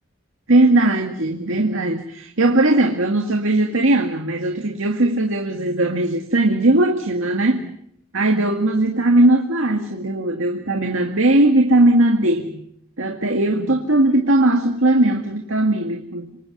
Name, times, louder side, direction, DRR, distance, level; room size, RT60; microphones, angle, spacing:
voice 1, 0.5-7.7 8.1-12.6 13.0-16.3, right 1 dB, 80° right, 3 dB, 2.0 m, -18 dB
27.0 x 25.5 x 5.4 m, 0.69 s
head